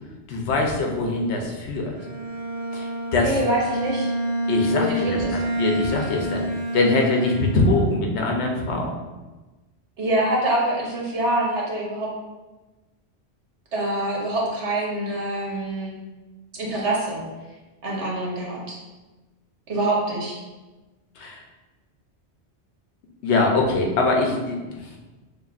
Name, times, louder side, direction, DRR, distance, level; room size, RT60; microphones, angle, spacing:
voice 1, 0.3-1.9 2.7-3.4 4.5-6.4 6.7-9.0 21.2-21.4 23.2-25.0, left 2 dB, 75° left, 1 dB, 1.0 m, -23 dB
Bowed string instrument, 1.9-8.0, right 1 dB, 65° right, 1.4 m, -28 dB
voice 2, 3.2-4.1 4.7-5.4 10.0-12.1 13.7-15.9 16.5-17.2 17.8-18.8 19.7-20.4, right 1 dB, 85° right, -3 dB, 1.3 m, -25 dB
6.5 x 2.6 x 2.5 m, 1.2 s
omnidirectional pair, 1.2 m